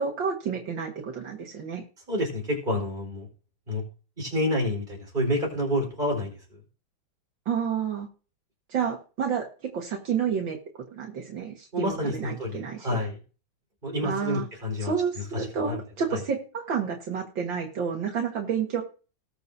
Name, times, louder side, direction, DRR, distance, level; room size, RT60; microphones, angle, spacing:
voice 1, 0.0-1.8 7.5-8.1 8.7-9.5 9.7-10.6 10.9-13.0 14.0-14.4 14.8-18.8, right 6 dB, 75° right, 1 dB, 2.2 m, -30 dB
voice 2, 2.1-3.3 3.7-3.8 4.2-6.4 11.7-13.2 13.8-14.9 15.3-15.8 16.1-16.2, left 1 dB, 25° right, -1 dB, 4.6 m, -28 dB
19.5 x 6.7 x 2.7 m, 0.36 s
omnidirectional pair, 2.1 m